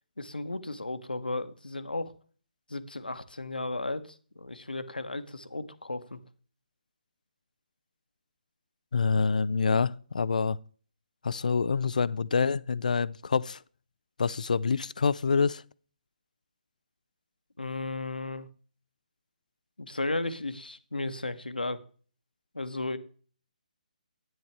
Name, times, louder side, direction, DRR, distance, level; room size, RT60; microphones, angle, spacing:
voice 1, 0.2-2.1 2.7-6.2 17.6-18.5 19.8-21.8 22.5-23.0, left 2 dB, 80° left, 1.0 m, -34 dB
voice 2, 8.9-10.6 11.2-13.6 14.2-15.6, left 5 dB, 60° left, 0.4 m, -26 dB
11.0 x 9.6 x 3.3 m
figure-of-eight pair, 140°, 5 cm